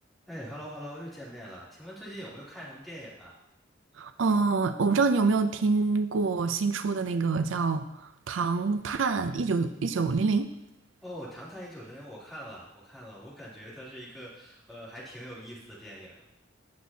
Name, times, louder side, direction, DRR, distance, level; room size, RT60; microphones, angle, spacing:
voice 1, 0.3-3.3 11.0-16.2, equal, ahead, -8 dB, 3.0 m, -43 dB
voice 2, 4.0-10.5, right 4 dB, 80° right, 10 dB, 0.5 m, -26 dB
17.5 x 6.1 x 2.8 m, 0.83 s
head